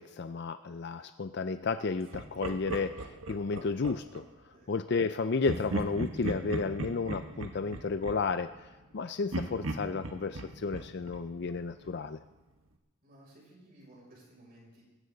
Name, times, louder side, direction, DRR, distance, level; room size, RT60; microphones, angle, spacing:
voice 1, 0.0-4.2 4.7-8.5 8.9-12.2, left 4 dB, 55° left, 10 dB, 0.5 m, -32 dB
Laughter, 2.1-4.3 5.4-8.9 9.3-12.1, right 1 dB, 85° right, 1.3 m, -38 dB
voice 2, 4.5-4.8 13.0-14.8, right 1 dB, 45° right, -3 dB, 6.7 m, -56 dB
20.5 x 16.0 x 4.0 m, 1.1 s
head